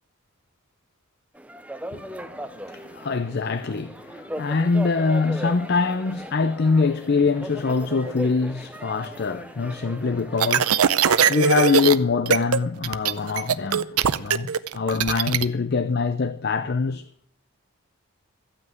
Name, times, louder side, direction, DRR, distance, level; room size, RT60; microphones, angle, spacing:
sound 1, 1.4-11.8, right 1 dB, 5° right, 0.5 m, -38 dB
voice 1, 1.9-17.3, left 4 dB, 45° left, 0.5 m, -24 dB
sound 2, 10.4-11.9 12.3-12.6 12.8-15.4, right 8 dB, 85° right, 0.6 m, -20 dB
14.0 x 6.0 x 9.1 m
head